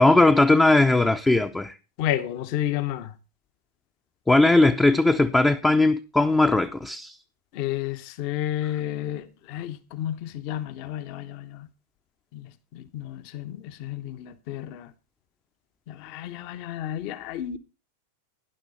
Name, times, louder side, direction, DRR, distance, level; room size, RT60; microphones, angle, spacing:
voice 1, 0.0-1.7 4.3-7.2, left 2 dB, 10° left, 0.7 m, -19 dB
voice 2, 2.0-3.1 7.5-11.7 12.3-12.4 12.7-14.9 15.9-17.6, left 12 dB, 45° left, 1.1 m, -31 dB
13.0 x 10.5 x 4.1 m
figure-of-eight pair, 90°, 0 cm